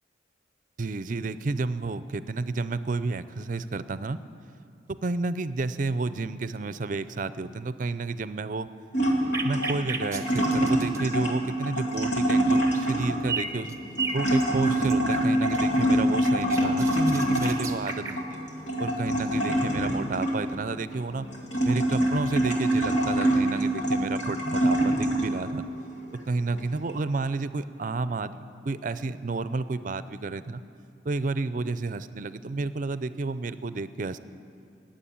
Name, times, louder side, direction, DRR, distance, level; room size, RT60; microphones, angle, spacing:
voice 1, 0.8-4.2 4.9-8.7 9.4-13.8 14.1-18.4 18.8-21.3 21.6-25.6 26.1-30.6 31.0-34.2, right 3 dB, 45° right, 14 dB, 0.5 m, -31 dB
sound 1, 8.9-25.5 26.0-27.0, right 1 dB, 85° left, 2.4 m, -25 dB
sound 2, 9.3-11.0 11.9-12.1 12.5-13.0 13.3-15.3 15.5-18.2, right 4 dB, 15° right, 0.9 m, -34 dB
20.0 x 7.6 x 8.7 m, 2.4 s
head